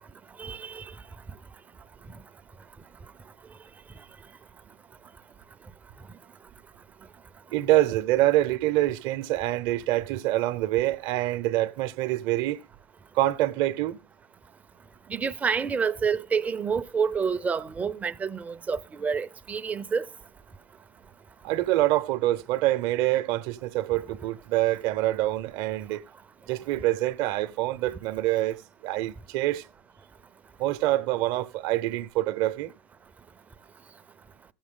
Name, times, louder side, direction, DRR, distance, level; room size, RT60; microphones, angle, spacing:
voice 1, 0.4-0.8 15.1-20.1, right 6 dB, 15° right, 0.5 m, -28 dB
voice 2, 7.5-12.6 13.1-14.0 21.4-26.0 26.5-29.7 30.6-32.7, right 15 dB, 55° right, 0.8 m, -26 dB
16.0 x 7.3 x 3.7 m
supercardioid pair, 125°, 9 cm